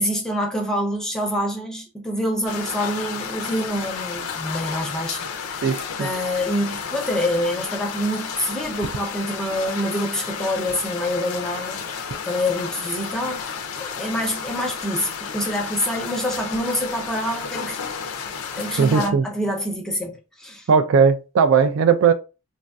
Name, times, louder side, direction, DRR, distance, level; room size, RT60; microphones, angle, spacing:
voice 1, 0.0-5.6 6.0-11.8 12.3-13.4 13.8-17.8 18.6-20.7, equal, 5° left, 0.5 m, -26 dB
sound 1, 2.5-19.1, left 6 dB, 90° left, 0.5 m, -32 dB
voice 2, 5.6-6.1 18.8-19.3 20.7-22.1, right 6 dB, 70° right, 0.3 m, -18 dB
3.1 x 2.5 x 2.2 m
head